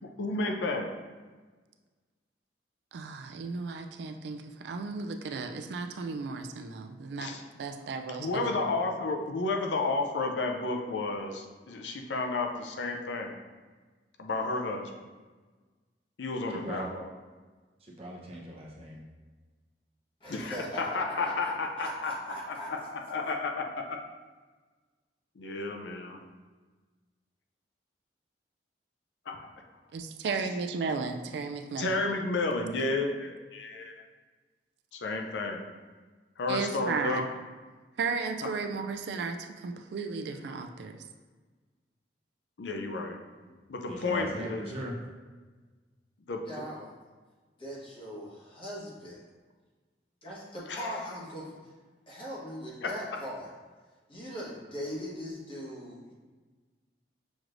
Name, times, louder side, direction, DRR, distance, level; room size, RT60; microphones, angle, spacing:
voice 1, 0.2-0.9 7.2-7.4 8.2-13.3 14.2-15.1 16.2-17.1 20.3-22.1 22.4-24.0 25.4-26.2 29.3-29.5 31.8-34.0 34.9-35.6 36.4-37.3 42.6-43.2 43.7-44.6 46.3-46.7 50.7-51.0 52.8-53.2, left 3 dB, 80° left, 3 dB, 0.5 m, -32 dB
voice 2, 2.9-7.3 7.6-8.7 29.9-31.9 32.6-32.7 36.5-37.2 38.0-41.0, right 4 dB, 65° right, 6 dB, 0.3 m, -34 dB
voice 3, 16.5-16.9 17.8-19.0 43.4-43.5 43.9-45.0, equal, 35° right, -3 dB, 0.8 m, -39 dB
voice 4, 20.2-22.9 46.5-46.9 47.6-49.2 50.2-51.7 52.1-53.5 54.1-56.1, equal, 30° left, -6 dB, 1.3 m, -40 dB
6.2 x 3.1 x 2.5 m, 1.4 s
head